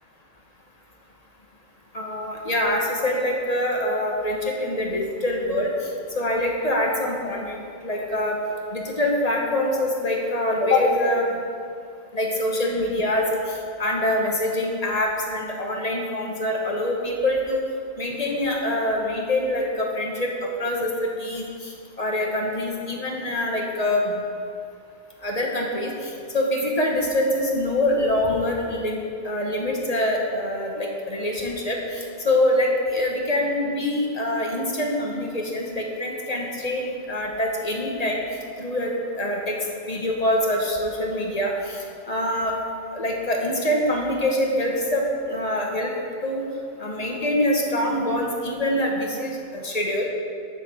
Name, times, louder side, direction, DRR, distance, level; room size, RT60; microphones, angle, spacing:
voice 1, 1.9-5.7 6.1-8.4 8.7-11.3 12.1-13.4 13.8-17.6 18.0-20.3 20.6-21.7 22.0-24.1 25.2-29.0 29.2-38.2 38.6-39.6 39.9-41.8 42.1-42.5 42.9-45.9 46.2-46.4 46.8-50.0, left 1 dB, 35° left, -1 dB, 1.2 m, -25 dB
7.7 x 7.4 x 6.0 m, 2.3 s
omnidirectional pair, 1.2 m